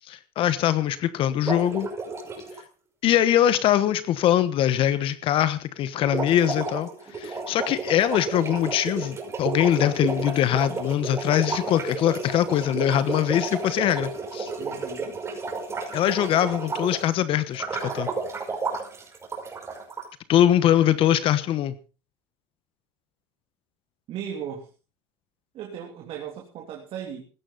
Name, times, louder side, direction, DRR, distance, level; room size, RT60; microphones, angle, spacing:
voice 1, 0.1-1.9 3.0-6.9 7.1-14.5 15.9-18.1 20.3-21.7, left 11 dB, 50° left, 14 dB, 1.2 m, -22 dB
sound 1, 1.5-2.6 6.0-17.1 17.5-20.0, right 3 dB, 25° right, 5.6 m, -32 dB
voice 2, 14.6-15.1 24.1-24.7 25.5-27.2, right 8 dB, 50° right, 1 dB, 3.2 m, -36 dB
16.0 x 13.0 x 4.1 m, 0.35 s
supercardioid pair, 105°, 12 cm